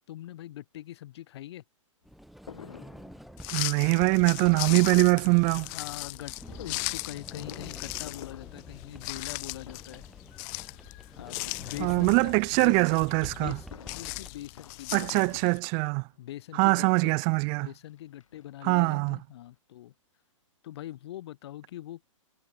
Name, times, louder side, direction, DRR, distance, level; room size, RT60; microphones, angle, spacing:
voice 1, 0.1-1.6 5.6-10.0 11.2-12.8 13.2-15.4 16.2-17.1 17.6-19.9 20.6-22.2, left 13 dB, 55° left, 3.1 m, -43 dB
Sliding door, 2.0-14.3, equal, ahead, 5.4 m, -48 dB
Fireworks, 2.5-5.7 6.4-9.4 9.6-10.2 11.2-12.3 13.4-16.1 16.9-17.0 17.2-17.3 17.7-18.9 19.2-19.3 19.5-19.6, left 7 dB, 70° left, 5.8 m, -49 dB
sound 1, 3.4-15.6, left 40 dB or more, 35° left, 2.0 m, -38 dB
voice 2, 3.5-5.7 11.8-13.6 14.9-16.0 16.6-17.7 18.6-19.2, right 40 dB or more, 30° right, 0.6 m, -23 dB
hypercardioid pair, 130°, 17 cm